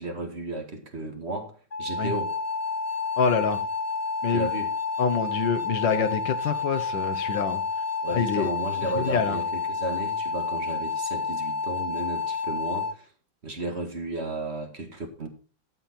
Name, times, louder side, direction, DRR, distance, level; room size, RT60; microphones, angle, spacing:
voice 1, 0.0-2.4 4.3-4.7 8.0-13.1 13.4-15.3, right 2 dB, 35° right, 2.0 m, -33 dB
sound 1, 1.7-12.9, left 4 dB, 35° left, 0.7 m, -30 dB
voice 2, 3.2-3.6 4.2-4.5 5.0-7.6 8.1-8.5 8.9-9.4, left 6 dB, 75° left, 1.9 m, -26 dB
13.0 x 7.3 x 4.4 m
omnidirectional pair, 2.0 m